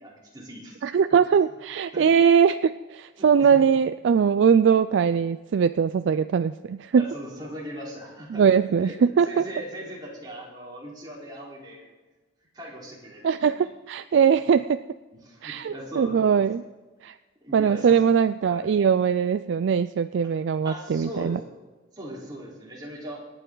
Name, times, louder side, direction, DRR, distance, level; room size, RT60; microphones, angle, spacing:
voice 1, 0.0-0.8 1.9-2.1 3.2-3.6 7.0-11.8 12.5-13.5 15.1-16.5 17.4-18.0 18.5-18.7 20.6-21.6 21.9-23.2, equal, 20° right, -5 dB, 3.9 m, -39 dB
voice 2, 0.8-7.0 8.3-9.4 13.2-14.8 15.4-16.6 17.0-17.1 17.5-21.4, right 7 dB, 65° right, 11 dB, 0.3 m, -21 dB
26.0 x 9.1 x 3.9 m, 1.2 s
head